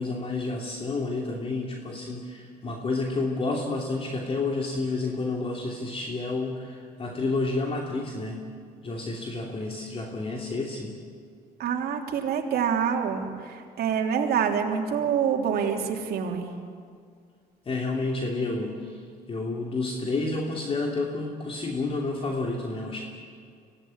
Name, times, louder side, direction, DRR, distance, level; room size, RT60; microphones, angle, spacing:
voice 1, 0.0-8.4 8.8-11.0 17.6-19.0 19.3-23.0, left 3 dB, 35° left, 0 dB, 2.8 m, -30 dB
voice 2, 11.6-16.5, right 7 dB, 65° right, 2 dB, 3.2 m, -26 dB
25.0 x 17.0 x 9.7 m, 2.1 s
cardioid pair, 110°, 17 cm